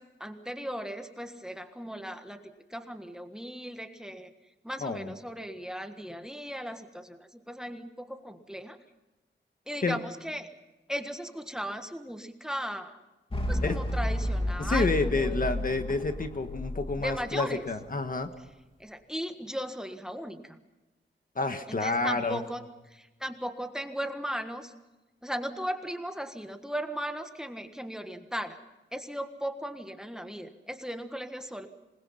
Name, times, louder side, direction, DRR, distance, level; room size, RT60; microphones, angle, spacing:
voice 1, 0.0-2.4 2.7-4.3 4.6-8.8 9.7-10.5 10.9-13.0 13.5-15.4 17.0-17.7 18.8-20.5 21.7-24.7 25.2-28.6 28.9-31.7, equal, 5° right, 7 dB, 1.5 m, -37 dB
voice 2, 4.8-5.1 9.8-10.0 13.4-13.8 14.6-18.3 21.3-22.4, left 3 dB, 45° left, 7 dB, 1.5 m, -29 dB
sound 1, 13.3-17.8, left 1 dB, 30° left, 2.8 m, -31 dB
26.5 x 21.0 x 5.7 m, 1.1 s
wide cardioid pair, 140°, 20 cm